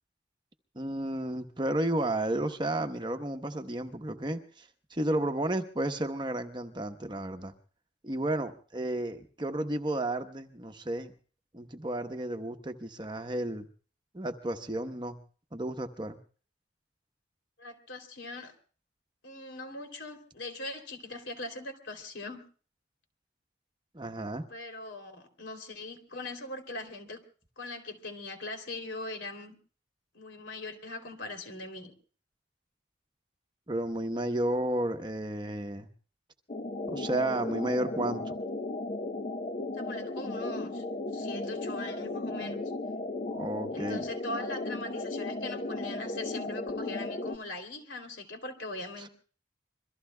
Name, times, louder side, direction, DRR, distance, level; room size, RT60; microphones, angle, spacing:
voice 1, 0.8-7.5 8.0-11.1 11.5-13.7 14.1-15.2 15.5-16.2 23.9-24.5 33.7-35.9 36.9-38.4 43.3-44.0 49.0-49.1, right 1 dB, 25° right, 6 dB, 0.9 m, -32 dB
voice 2, 17.6-18.5 19.2-22.4 24.5-27.2 27.6-29.6 30.1-31.9 39.8-40.8 41.1-42.6 43.7-49.1, left 2 dB, 70° left, 4 dB, 3.0 m, -41 dB
sound 1, 36.5-47.4, left 2 dB, 40° left, 0.7 m, -35 dB
26.5 x 23.0 x 2.2 m, 0.41 s
head